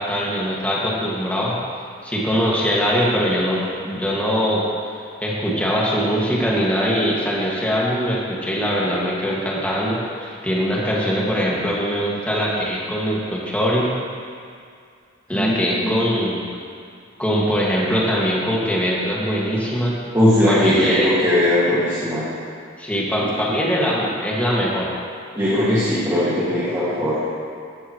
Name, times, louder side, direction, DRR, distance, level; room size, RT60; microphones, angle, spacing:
voice 1, 0.0-1.6 2.0-13.9 15.3-16.4 17.2-19.9 20.5-21.1 22.8-24.9, equal, 5° left, -5 dB, 2.0 m, -22 dB
voice 2, 15.3-16.0 20.1-22.2 25.4-27.2, left 1 dB, 20° right, -12 dB, 2.1 m, -19 dB
15.5 x 12.0 x 3.2 m, 2.3 s
head